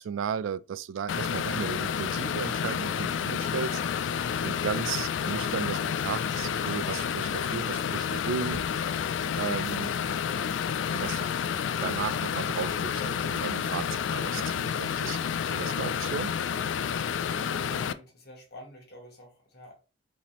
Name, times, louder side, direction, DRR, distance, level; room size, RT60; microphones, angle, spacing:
voice 1, 0.0-4.2 4.4-9.0 9.4-9.9 10.9-11.3 11.8-15.2 15.5-16.3, right 7 dB, 90° right, 0.3 m, -35 dB
sound 1, 1.1-17.9, left 7 dB, 80° left, 0.3 m, -30 dB
voice 2, 17.5-19.8, left 1 dB, 55° left, 1.8 m, -47 dB
4.9 x 3.0 x 3.3 m
head